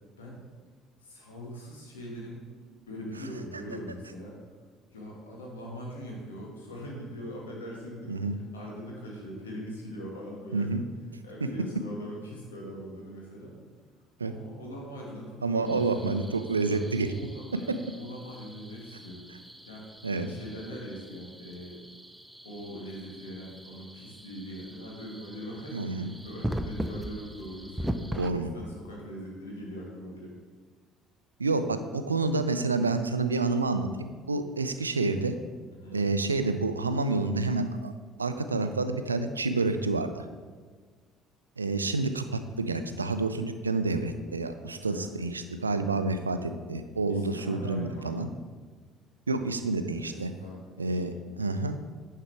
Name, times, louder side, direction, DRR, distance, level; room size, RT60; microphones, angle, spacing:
voice 1, 1.0-2.5 2.9-4.4 4.9-10.7 11.2-13.5 14.2-19.9 20.2-21.8 22.4-30.3 35.7-36.0 44.7-45.2 47.1-48.3 50.0-51.0, equal, 80° left, -3 dB, 1.8 m, -42 dB
voice 2, 15.4-17.1 20.0-20.3 25.7-26.1 28.2-28.5 31.4-35.3 35.9-37.9 38.2-40.2 41.6-48.3 49.3-50.3 50.8-51.8, right 3 dB, 85° right, 9 dB, 0.4 m, -29 dB
sound 1, 15.7-28.3, equal, 5° right, 0.5 m, -40 dB
9.9 x 5.6 x 3.4 m, 1.5 s
figure-of-eight pair, 55°, 0 cm